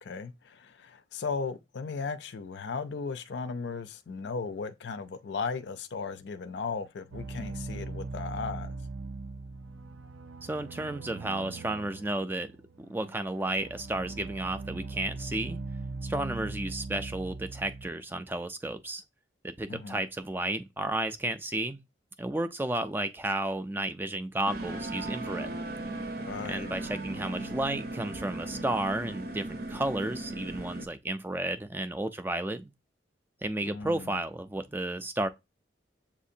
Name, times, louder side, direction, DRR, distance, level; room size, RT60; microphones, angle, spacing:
voice 1, 0.0-8.8 19.7-20.0 26.3-26.8 33.6-34.2, left 5 dB, 65° left, 0.4 m, -36 dB
sound 1, 7.1-17.9, right 3 dB, 85° right, 0.5 m, -40 dB
voice 2, 10.4-12.5 12.9-15.6 16.0-19.0 19.4-21.8 22.2-25.6 26.5-32.7 33.4-35.3, right 1 dB, 10° right, 0.3 m, -32 dB
sound 2, 24.5-30.9, right 2 dB, 50° right, 0.7 m, -37 dB
7.1 x 2.5 x 2.7 m
head